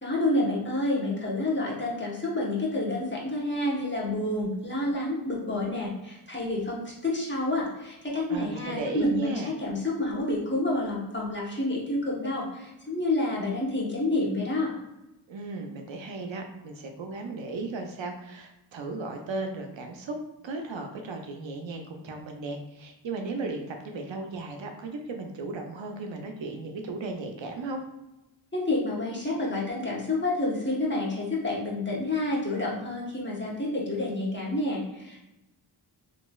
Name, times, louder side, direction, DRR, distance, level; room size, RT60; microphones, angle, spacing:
voice 1, 0.0-14.7 28.5-35.3, left 2 dB, 25° left, -4 dB, 1.0 m, -29 dB
voice 2, 8.3-9.5 15.3-27.8, right 3 dB, 70° right, 4 dB, 0.5 m, -35 dB
3.0 x 2.5 x 2.3 m, 0.97 s
wide cardioid pair, 55°, 48 cm